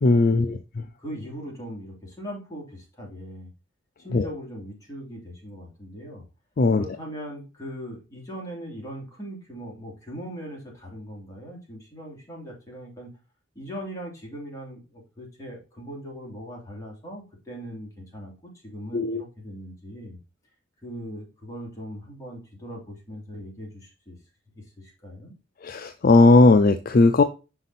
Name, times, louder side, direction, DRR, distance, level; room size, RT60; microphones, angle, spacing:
voice 1, 0.0-0.8 4.1-4.3 6.6-6.8 18.9-19.2 25.6-27.2, left 3 dB, 45° left, 0.5 m, -18 dB
voice 2, 1.0-3.5 4.0-6.2 6.7-13.1 13.5-20.2 20.8-24.2 24.5-25.3, equal, 20° left, 2.8 m, -39 dB
5.8 x 5.2 x 4.0 m
head